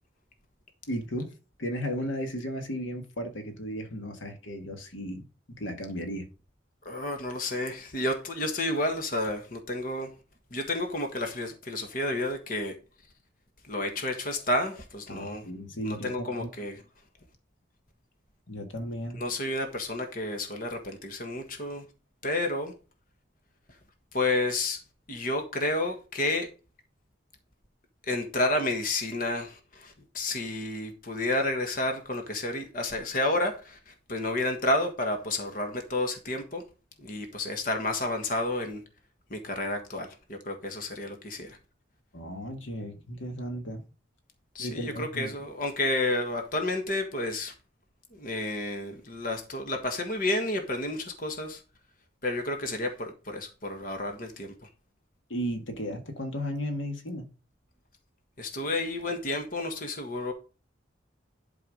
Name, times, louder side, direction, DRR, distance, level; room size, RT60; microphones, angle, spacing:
voice 1, 0.9-1.3 1.6-6.3 15.1-16.5 18.5-19.2 42.1-43.8 44.6-45.3 55.3-57.3, equal, 85° left, 1.8 m, -35 dB
voice 2, 6.8-10.1 10.5-12.8 13.7-15.4 15.8-16.8 19.1-21.8 22.2-22.7 24.1-24.8 25.1-26.5 28.1-36.6 37.0-38.8 39.3-41.6 44.5-47.5 48.1-51.6 52.2-54.7 58.4-60.3, left 2 dB, 45° left, 1.5 m, -30 dB
11.0 x 4.8 x 5.1 m
head